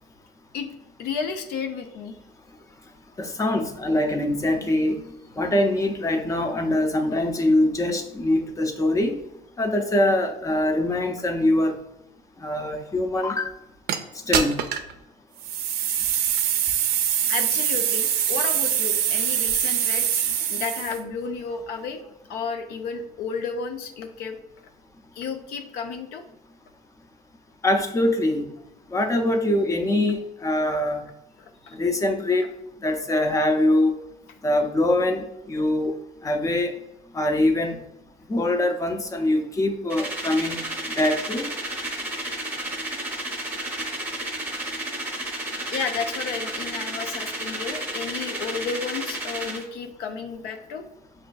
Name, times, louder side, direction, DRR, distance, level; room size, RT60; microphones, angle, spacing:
voice 1, 1.0-2.2 17.3-20.2 20.5-22.0 22.3-24.4 25.2-26.2 31.4-31.8 43.4-43.6 45.7-50.9, left 5 dB, 85° left, 5 dB, 0.5 m, -32 dB
voice 2, 3.2-5.0 5.4-9.2 9.6-11.8 12.4-13.5 14.3-14.6 27.6-28.5 28.9-31.0 31.7-32.5 32.8-34.0 34.4-36.0 36.2-36.7 37.1-37.8 38.3-40.6 41.0-41.5, left 1 dB, 20° left, 6 dB, 0.5 m, -23 dB
sound 1, 13.9-14.0 14.3-14.9 15.4-21.0, right 9 dB, 85° right, 0.4 m, -24 dB
sound 2, 39.9-49.6, right 1 dB, 10° right, 0.7 m, -32 dB
6.0 x 2.5 x 2.3 m, 0.86 s
cardioid pair, 105°, 16 cm